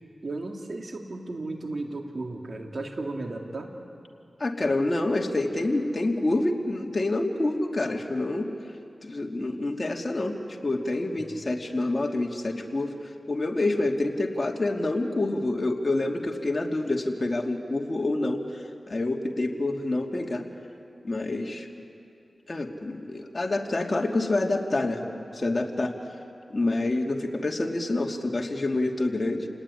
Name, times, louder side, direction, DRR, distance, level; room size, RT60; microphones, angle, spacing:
voice 1, 0.2-3.7, right 2 dB, 60° right, 2 dB, 3.1 m, -34 dB
voice 2, 4.4-8.5 9.0-12.9 13.3-20.5 21.0-21.9 22.5-25.9 26.5-29.5, left 2 dB, 40° left, 1 dB, 2.8 m, -27 dB
27.5 x 19.0 x 9.9 m, 2.5 s
cardioid pair, 45°, 0 cm